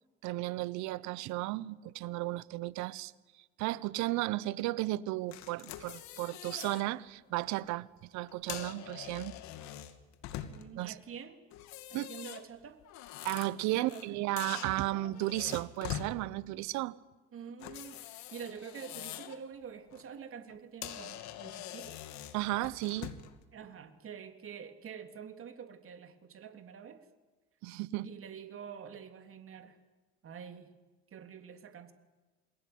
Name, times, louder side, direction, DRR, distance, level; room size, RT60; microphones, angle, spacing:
voice 1, 0.2-7.9 8.1-9.3 10.7-10.9 11.9-12.1 13.2-16.9 22.3-23.1 27.6-28.1, right 17 dB, 70° right, 1.2 m, -34 dB
sound 1, 5.3-6.9 7.3-7.5 8.3-10.8 11.5-14.1 14.4-16.1 17.6-19.4 19.8-20.0 20.5-20.6 20.8-23.4, left 12 dB, 70° left, 2.5 m, -44 dB
voice 2, 10.5-11.4 11.9-12.8 13.7-14.2 17.3-22.0 23.5-27.0 28.0-29.8 30.2-30.7 31.1-31.9, right 7 dB, 45° right, 3.3 m, -47 dB
28.0 x 21.5 x 9.6 m
hypercardioid pair, 75°, 30 cm